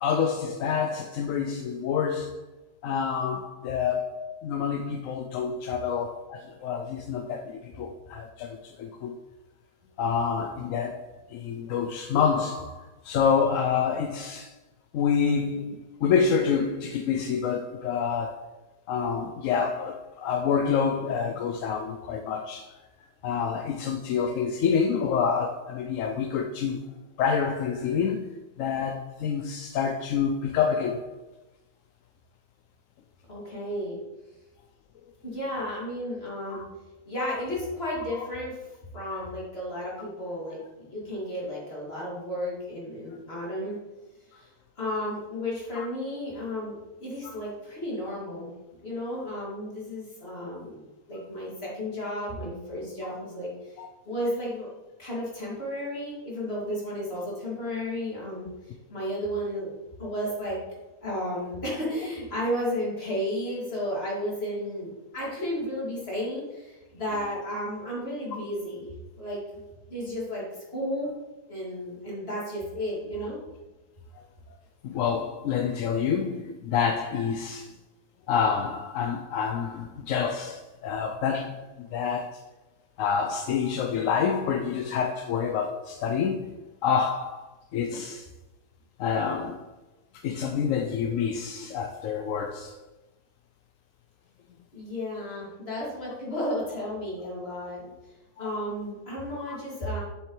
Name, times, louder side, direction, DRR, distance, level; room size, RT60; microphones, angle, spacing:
voice 1, 0.0-2.4 2.8-9.2 10.0-14.5 14.9-18.5 18.9-22.7 23.2-26.8 27.2-31.2 36.5-36.7 45.8-45.9 53.8-53.9 74.8-77.7 78.3-82.4 83.0-88.3 89.0-89.7 90.2-92.8 98.4-98.5 99.5-99.6, left 6 dB, 70° left, 0.8 m, -28 dB
voice 2, 33.3-34.0 35.2-36.6 37.1-43.8 44.3-44.5 44.8-48.5 48.8-53.5 54.1-54.7 55.0-58.5 58.9-59.7 60.0-60.6 61.0-68.9 69.2-69.4 69.9-70.4 70.7-71.1 71.5-73.4 94.7-97.8 98.4-100.0, equal, 40° left, 2.7 m, -33 dB
7.4 x 6.7 x 3.2 m
omnidirectional pair, 1.6 m